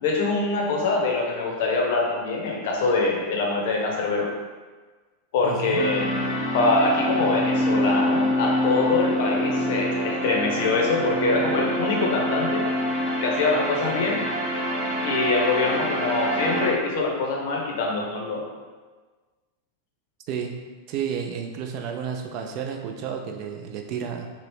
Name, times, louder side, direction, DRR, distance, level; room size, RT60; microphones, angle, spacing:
voice 1, 0.0-4.3 5.3-6.0 6.5-12.6 13.2-14.2 15.0-18.4, left 3 dB, 50° left, 0 dB, 0.6 m, -24 dB
voice 2, 5.4-5.9 20.3-20.5 20.9-24.3, right 7 dB, 40° right, 3 dB, 0.3 m, -31 dB
sound 1, 5.7-16.7, equal, 10° right, 1.0 m, -26 dB
2.9 x 2.7 x 3.1 m, 1.4 s
figure-of-eight pair, 90°, 0 cm